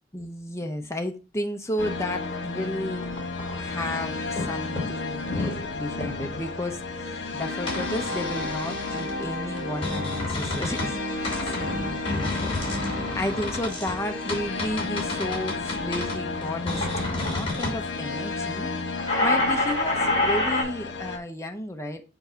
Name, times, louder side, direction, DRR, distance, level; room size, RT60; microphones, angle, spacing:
voice 1, 0.1-3.1 3.6-18.7 19.2-22.0, left 1 dB, 15° left, 0.8 m, -33 dB
sound 1, 1.8-21.2, left 3 dB, 80° left, 1.3 m, -32 dB
sound 2, 3.0-3.9 4.3-4.5 4.8-5.6 6.0-6.4 7.7-9.1 9.6-11.0 11.2-17.8 19.0-20.6, left 2 dB, 30° left, 2.9 m, -29 dB
7.0 x 2.7 x 5.7 m
head